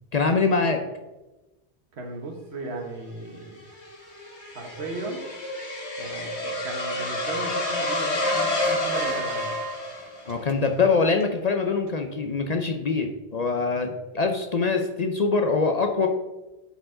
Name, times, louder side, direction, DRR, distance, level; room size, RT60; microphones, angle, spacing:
voice 1, 0.1-0.8 10.3-16.1, left 4 dB, 45° left, 4 dB, 0.6 m, -24 dB
voice 2, 1.9-3.6 4.5-5.2 6.0-9.6, right 2 dB, 75° right, 2 dB, 1.4 m, -36 dB
sound 1, 3.4-10.5, left 1 dB, 90° left, 1.6 m, -29 dB
sound 2, 8.2-9.8 10.1-10.8 11.1-11.4 11.9-12.0, right 7 dB, 55° right, 0.5 m, -36 dB
10.0 x 4.7 x 3.8 m, 1.1 s
omnidirectional pair, 1.1 m